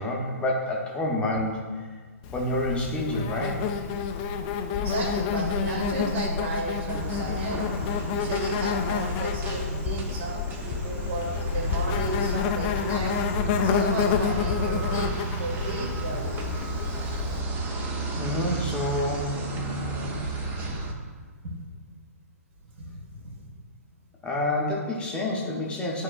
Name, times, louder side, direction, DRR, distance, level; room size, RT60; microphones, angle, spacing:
voice 1, 0.0-1.9 2.3-3.6 18.2-19.3 24.2-26.0, left 1 dB, 10° left, -2 dB, 0.9 m, -28 dB
Insect, 2.2-17.4, left 6 dB, 30° left, 0.5 m, -29 dB
voice 2, 4.8-7.6 8.1-13.2 13.6-15.1 15.4-16.5 21.4-21.6 22.8-23.4, right 3 dB, 50° right, 1 dB, 1.5 m, -34 dB
sound 1, 6.9-20.9, right 2 dB, 20° right, 0.8 m, -32 dB
11.0 x 4.7 x 2.3 m, 1.5 s
figure-of-eight pair, 120°, 9 cm